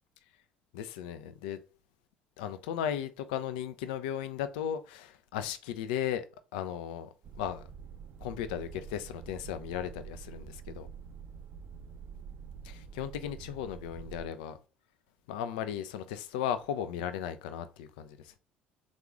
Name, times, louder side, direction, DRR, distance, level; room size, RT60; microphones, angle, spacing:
voice 1, 0.7-1.6 2.4-6.2 6.5-7.1 7.4-7.7 8.2-10.9 12.6-14.6 15.3-18.3, left 9 dB, 65° left, 0.4 m, -36 dB
sound 1, 7.2-14.3, right 6 dB, 50° right, 0.5 m, -47 dB
3.7 x 2.4 x 3.5 m
figure-of-eight pair, 55°, 5 cm